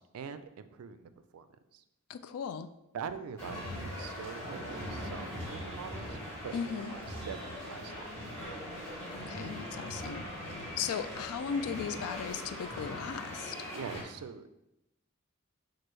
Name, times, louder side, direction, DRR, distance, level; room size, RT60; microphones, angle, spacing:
voice 1, 0.0-1.5 1.7-1.8 2.9-8.1 13.7-14.6, right 6 dB, 90° right, 11 dB, 0.3 m, -44 dB
voice 2, 2.1-2.7 6.5-6.9 9.1-10.3 10.8-13.6, left 7 dB, 80° left, 11 dB, 0.3 m, -37 dB
sound 1, 3.4-14.0, left 1 dB, 15° left, 1.3 m, -41 dB
sound 2, 4.4-12.8, right 2 dB, 25° right, 0.6 m, -50 dB
6.0 x 2.5 x 3.1 m, 0.88 s
head